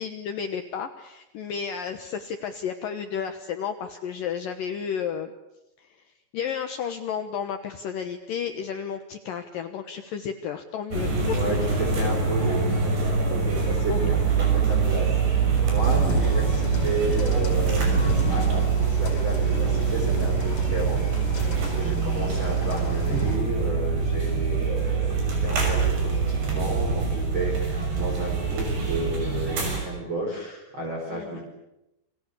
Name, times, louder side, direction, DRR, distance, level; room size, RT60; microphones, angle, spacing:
voice 1, 0.0-5.3 5.8-5.9 6.3-11.4 12.7-12.8 13.9-14.1 21.4-21.7 31.1-31.4, left 7 dB, 75° left, 7 dB, 2.0 m, -32 dB
sound 1, 10.9-29.8, right 5 dB, 55° right, 8.2 m, -24 dB
voice 2, 11.3-31.4, right 1 dB, 25° right, -2 dB, 5.7 m, -32 dB
sound 2, 15.8-23.4, left 3 dB, 30° left, 5.2 m, -33 dB
29.5 x 24.0 x 8.4 m, 0.91 s
omnidirectional pair, 5.8 m